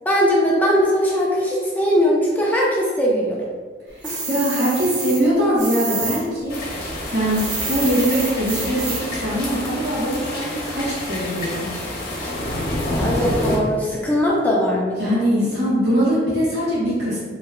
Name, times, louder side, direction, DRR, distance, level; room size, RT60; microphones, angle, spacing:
voice 1, 0.0-3.4 4.0-4.2 12.9-15.2, equal, 10° left, -5 dB, 0.4 m, -20 dB
voice 2, 3.9-11.7 15.0-17.2, equal, 65° right, -7 dB, 1.4 m, -22 dB
sound 1, 4.0-6.2 6.5-9.2, right 4 dB, 90° right, 0.8 m, -28 dB
sound 2, 6.5-13.6, left 1 dB, 55° left, 0.9 m, -28 dB
3.2 x 2.1 x 3.5 m, 1.5 s
head